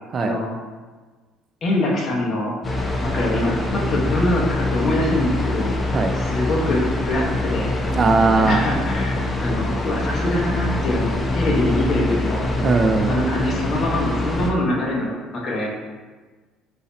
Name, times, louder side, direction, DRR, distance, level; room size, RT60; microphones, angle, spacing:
voice 1, 0.2-0.5 1.6-2.5 3.0-5.7 6.1-7.7 8.4-12.4 13.1-15.7, left 1 dB, 45° left, -3 dB, 1.1 m, -24 dB
sound 1, 2.6-14.5, left 2 dB, 25° left, 0.6 m, -24 dB
voice 2, 8.0-8.6 12.6-13.2, right 3 dB, 35° right, 6 dB, 0.3 m, -19 dB
4.1 x 2.7 x 4.1 m, 1.3 s
cardioid pair, 105°, 0 cm